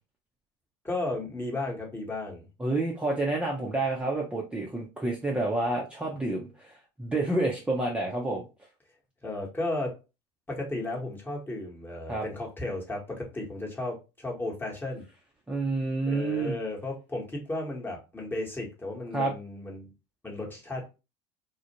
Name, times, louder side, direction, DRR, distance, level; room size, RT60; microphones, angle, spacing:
voice 1, 0.8-2.5 9.2-10.0 10.5-15.0 16.0-19.9 20.2-20.9, left 2 dB, 15° left, 1.1 m, -34 dB
voice 2, 2.6-8.5 12.1-12.3 15.5-16.6 19.1-19.3, right 2 dB, 5° right, 0.6 m, -29 dB
2.4 x 2.1 x 2.8 m
hypercardioid pair, 80°, 14 cm